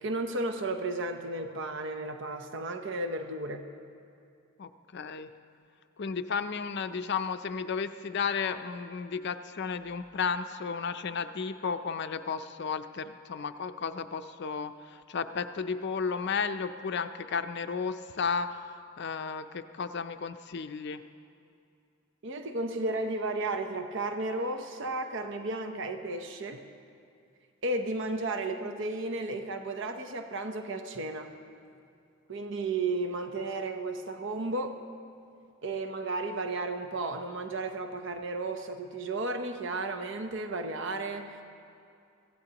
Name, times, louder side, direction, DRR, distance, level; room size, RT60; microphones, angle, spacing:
voice 1, 0.0-3.6 22.2-26.6 27.6-31.3 32.3-34.8 35.6-41.4, right 2 dB, 60° right, 6 dB, 0.8 m, -33 dB
voice 2, 4.6-5.3 6.0-18.6 19.0-21.0, left 5 dB, 50° left, 10 dB, 0.5 m, -33 dB
23.0 x 16.0 x 2.9 m, 2.5 s
head